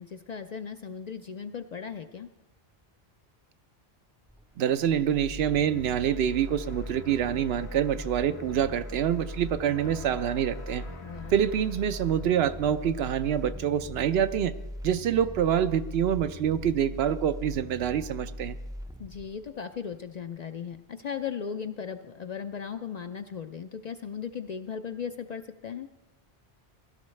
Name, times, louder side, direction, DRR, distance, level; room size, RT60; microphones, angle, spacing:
voice 1, 0.0-2.3 11.0-11.4 19.0-25.9, left 7 dB, 55° left, 8 dB, 0.5 m, -37 dB
sound 1, 4.3-20.4 20.7-20.8, equal, 5° right, 0.4 m, -40 dB
voice 2, 4.6-10.8 11.3-14.5 14.8-18.6, right 9 dB, 75° right, 12 dB, 0.8 m, -26 dB
sound 2, 5.6-13.5, left 5 dB, 90° left, 1.3 m, -50 dB
16.5 x 12.0 x 3.2 m, 1.0 s
omnidirectional pair, 1.1 m